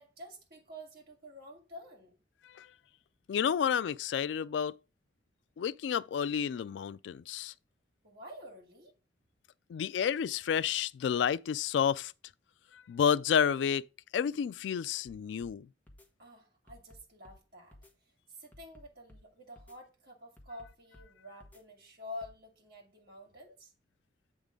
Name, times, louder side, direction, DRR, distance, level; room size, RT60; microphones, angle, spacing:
voice 1, 0.0-2.2 8.0-8.9 16.2-17.8 18.3-23.7, left 1 dB, 55° right, 2.4 m, -49 dB
voice 2, 3.3-4.8 5.6-7.5 9.7-12.1 12.7-13.8 14.1-15.7, left 8 dB, 80° left, 0.3 m, -30 dB
sound 1, 15.1-15.6 15.9-16.1 16.7-17.4 17.7-17.9 18.5-19.2 19.6-19.8 20.4-21.1 21.4-21.6 22.2-22.4, left 1 dB, 10° left, 1.2 m, -56 dB
8.1 x 3.6 x 5.1 m
head